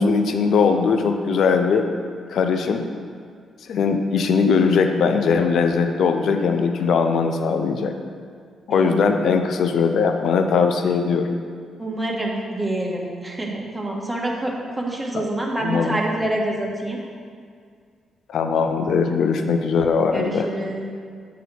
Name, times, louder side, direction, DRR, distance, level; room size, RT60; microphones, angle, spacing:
voice 1, 0.0-1.9 2.3-2.9 3.7-7.9 8.7-11.4 15.1-15.3 15.6-16.0 18.3-20.5, left 5 dB, 70° left, 6 dB, 0.5 m, -20 dB
voice 2, 11.8-17.0 20.1-20.9, right 1 dB, 10° right, -2 dB, 1.4 m, -27 dB
8.4 x 3.4 x 6.0 m, 2.1 s
cardioid pair, 80°, 0 cm